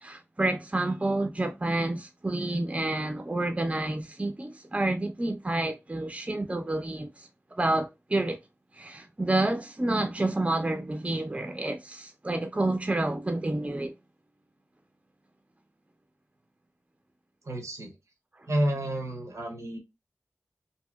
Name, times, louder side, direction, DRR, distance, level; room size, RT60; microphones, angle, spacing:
voice 1, 0.0-7.3 7.6-8.4 8.7-13.9, right 2 dB, 25° right, 0.5 m, -29 dB
voice 2, 17.4-18.0 18.5-19.8, right 1 dB, 90° right, 0.9 m, -30 dB
2.8 x 2.8 x 2.2 m
wide cardioid pair, 70°, 5 cm